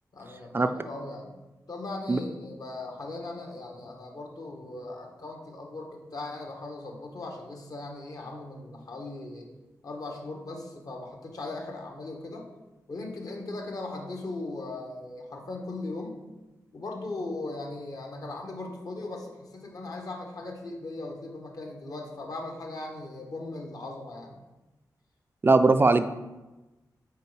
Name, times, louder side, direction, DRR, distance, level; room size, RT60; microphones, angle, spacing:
voice 1, 0.1-1.3 1.7-9.5 9.8-12.5 12.9-16.2 16.7-24.4, left 2 dB, 60° left, 1 dB, 1.2 m, -38 dB
voice 2, 25.4-26.0, right 3 dB, 30° right, 9 dB, 0.3 m, -19 dB
5.4 x 4.3 x 4.7 m, 1.1 s
cardioid pair, 80°, 7 cm